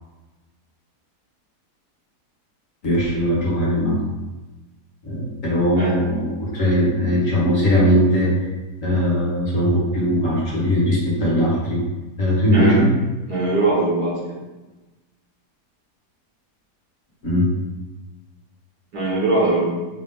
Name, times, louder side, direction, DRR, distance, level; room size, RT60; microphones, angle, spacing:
voice 1, 2.8-4.0 5.0-8.3 8.8-11.8 12.2-12.9 17.2-17.5, equal, 55° left, -5 dB, 1.5 m, -19 dB
voice 2, 13.3-14.1 18.9-19.7, right 2 dB, 70° right, -6 dB, 2.1 m, -21 dB
4.7 x 3.0 x 3.5 m, 1.1 s
omnidirectional pair, 1.7 m